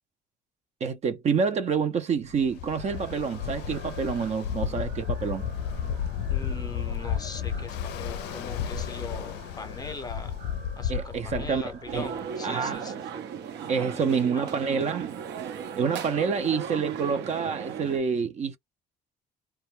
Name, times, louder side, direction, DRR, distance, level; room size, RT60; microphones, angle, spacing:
voice 1, 0.8-5.5 10.9-12.1 12.4-12.8 13.7-15.2 15.8-18.6, right 6 dB, 40° right, 0.5 m, -27 dB
Ocean, 2.3-12.2, left 8 dB, 85° left, 0.4 m, -33 dB
sound 1, 2.8-12.8, right 4 dB, 60° right, 1.0 m, -49 dB
voice 2, 6.3-10.4 10.8-13.2 13.7-14.6, left 3 dB, 20° left, 0.7 m, -41 dB
sound 2, 11.9-18.0, right 7 dB, 85° right, 0.8 m, -36 dB
2.2 x 2.1 x 3.1 m
cardioid pair, 110°, 17 cm